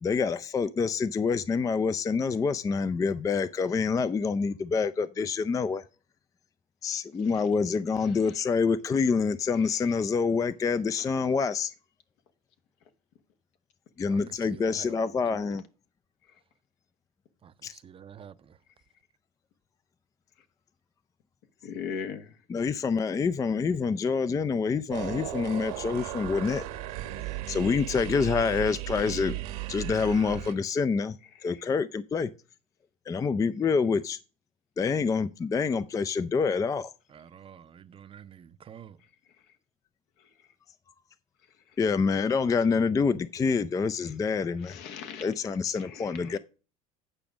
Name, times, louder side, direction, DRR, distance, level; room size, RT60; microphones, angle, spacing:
voice 1, 0.0-5.8 6.8-11.7 14.0-15.6 17.6-17.7 22.5-26.6 27.5-29.4 29.7-31.2 31.4-32.3 33.1-34.2 34.8-36.9 41.8-44.8 45.2-46.4, left 5 dB, 20° left, 0.4 m, -27 dB
voice 2, 14.1-15.0 15.3-15.4 17.4-18.6 37.1-39.0, right 8 dB, 30° right, 0.6 m, -48 dB
voice 3, 21.6-22.3 44.6-45.3 45.8-46.4, left 7 dB, 70° left, 1.3 m, -38 dB
sound 1, 24.9-30.5, right 15 dB, 80° right, 1.3 m, -36 dB
8.8 x 5.0 x 6.0 m
supercardioid pair, 90°, 18 cm